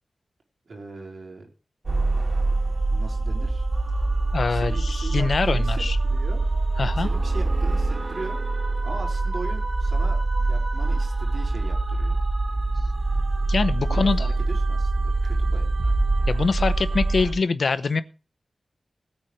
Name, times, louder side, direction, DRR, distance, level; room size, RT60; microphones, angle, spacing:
voice 1, 0.7-1.5 2.9-3.7 4.5-6.5 6.8-8.4 8.8-12.2 13.8-15.7, right 3 dB, 80° right, 0 dB, 4.2 m, -39 dB
sound 1, 1.8-17.3, right 2 dB, 55° right, 3.4 m, -24 dB
voice 2, 4.3-6.0 6.8-7.1 13.5-14.2 16.3-18.0, left 4 dB, 75° left, 13 dB, 0.8 m, -24 dB
20.0 x 8.9 x 3.2 m, 0.33 s
wide cardioid pair, 75°, 0 cm